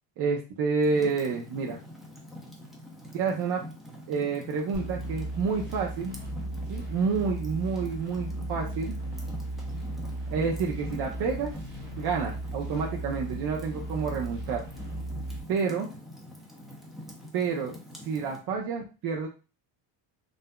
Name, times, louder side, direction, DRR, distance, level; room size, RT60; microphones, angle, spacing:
voice 1, 0.2-1.8 3.1-3.6 4.1-6.1 6.7-8.9 10.3-11.5 12.0-14.6 15.5-15.9 17.3-17.7 18.0-19.3, right 5 dB, 60° right, -1 dB, 0.8 m, -29 dB
Fire, 0.8-18.4, left 1 dB, ahead, 0.5 m, -45 dB
sound 1, 4.7-15.4, right 1 dB, 25° right, 1.0 m, -36 dB
5.5 x 2.7 x 2.2 m, 0.31 s
cardioid pair, 165°, 43 cm